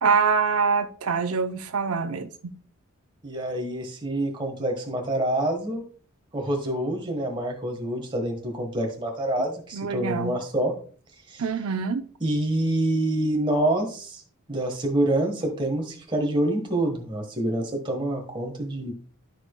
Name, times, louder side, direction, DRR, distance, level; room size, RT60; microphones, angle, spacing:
voice 1, 0.0-2.3 9.7-10.3 11.4-12.0, right 5 dB, 85° right, 0.6 m, -24 dB
voice 2, 3.2-5.8 6.3-10.7 11.3-11.4 12.2-14.2 14.5-18.9, right 1 dB, 20° right, 1.3 m, -26 dB
13.0 x 4.8 x 2.2 m
head